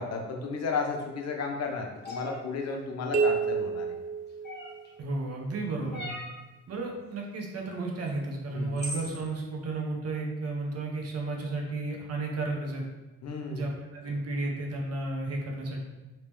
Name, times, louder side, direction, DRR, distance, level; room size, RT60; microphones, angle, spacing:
voice 1, 0.0-3.9 8.5-8.8 13.2-13.7, left 4 dB, 60° left, 2 dB, 0.7 m, -33 dB
sound 1, 2.0-2.4 4.4-4.9 5.9-6.4 8.1-8.2 8.8-9.2, equal, 35° left, 1.2 m, -38 dB
sound 2, 3.1-5.1, right 5 dB, 30° right, 0.4 m, -29 dB
voice 2, 5.0-6.1 6.7-12.9 13.5-15.8, right 2 dB, 55° right, 0 dB, 0.9 m, -33 dB
3.0 x 2.9 x 3.4 m, 1.1 s
cardioid pair, 90°, 30 cm